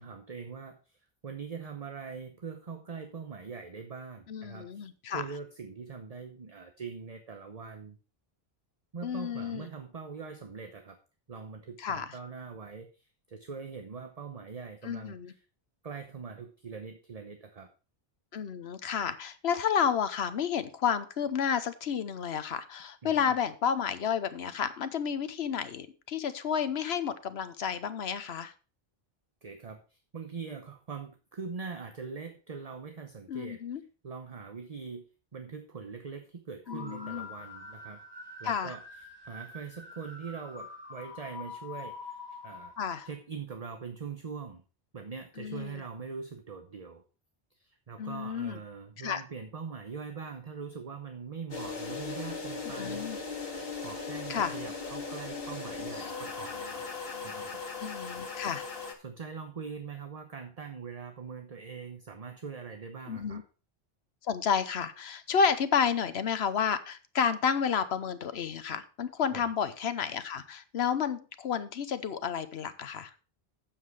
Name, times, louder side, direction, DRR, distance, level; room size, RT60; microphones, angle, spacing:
voice 1, 0.0-8.0 8.9-11.0 11.3-15.4 15.8-17.7 23.0-23.3 29.4-33.6 34.0-35.1 35.3-38.0 38.4-38.8 39.2-42.7 43.0-44.6 44.9-47.0 47.5-53.1 53.8-56.8 57.2-57.6 59.0-63.4 69.3-69.5, right 5 dB, 40° right, 6 dB, 0.9 m, -42 dB
voice 2, 4.3-5.2 9.0-9.7 11.8-12.1 14.8-15.3 18.3-28.5 33.3-33.8 36.7-37.3 38.4-38.7 42.8-43.1 45.4-45.8 48.0-48.6 49.0-49.2 52.8-53.2 54.3-54.5 57.8-58.7 63.1-63.4 64.2-73.1, left 7 dB, 85° left, 12 dB, 1.1 m, -31 dB
sound 1, 36.7-43.1, left 3 dB, 25° right, 1.6 m, -45 dB
sound 2, 51.5-58.9, left 4 dB, 65° left, 2.0 m, -38 dB
8.6 x 7.5 x 4.7 m, 0.34 s
omnidirectional pair, 1.1 m